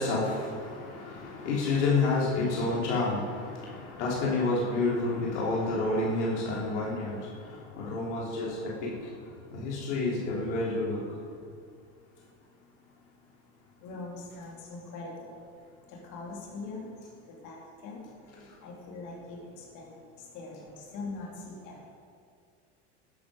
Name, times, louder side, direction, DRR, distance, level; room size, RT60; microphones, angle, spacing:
voice 1, 0.0-7.2 7.8-8.7 9.5-11.0, left 3 dB, 80° left, -4 dB, 3.4 m, -29 dB
voice 2, 13.8-15.4 15.9-16.9 17.3-18.3 18.6-21.8, left 3 dB, 60° left, -3 dB, 3.3 m, -42 dB
13.0 x 11.5 x 5.1 m, 2.2 s
supercardioid pair, 110°, 35 cm